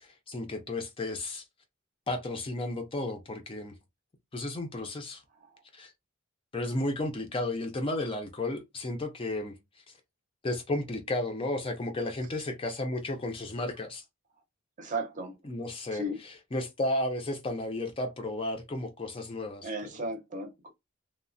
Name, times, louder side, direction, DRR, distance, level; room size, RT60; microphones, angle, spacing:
voice 1, 0.0-1.4 2.1-3.8 4.3-5.2 5.7-5.9 6.5-9.5 10.4-14.0 15.4-19.9, left 2 dB, 25° left, 0.4 m, -33 dB
voice 2, 14.8-15.3 15.9-16.2 19.6-20.7, right 1 dB, 35° right, 0.6 m, -35 dB
3.0 x 2.1 x 2.5 m
head